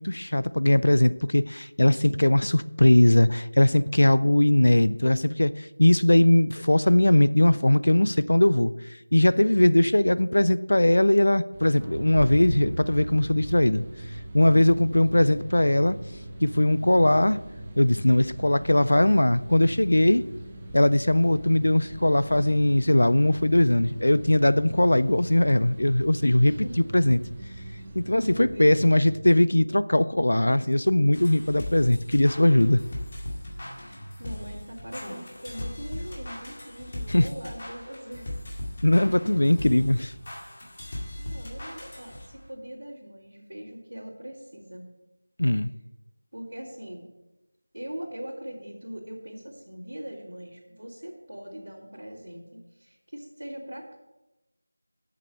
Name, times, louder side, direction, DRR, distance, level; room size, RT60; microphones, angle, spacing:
voice 1, 0.0-8.7 9.1-13.8 14.3-16.0 16.4-17.4 17.8-20.2 20.7-26.6 26.9-27.2 28.0-32.8 37.1-37.2 38.8-40.1 45.4-45.7, left 1 dB, 75° left, 16 dB, 0.4 m, -20 dB
sound 1, 11.5-29.2, right 1 dB, 15° right, 0.7 m, -39 dB
voice 2, 26.4-26.8 27.8-28.9 33.7-38.5 39.0-39.8 41.2-44.9 45.6-45.7 46.3-47.1 47.7-54.0, equal, 80° right, -9 dB, 3.3 m, -41 dB
sound 2, 31.1-42.5, left 1 dB, 30° left, 2.0 m, -38 dB
7.7 x 7.3 x 6.8 m, 1.0 s
figure-of-eight pair, 175°, 0 cm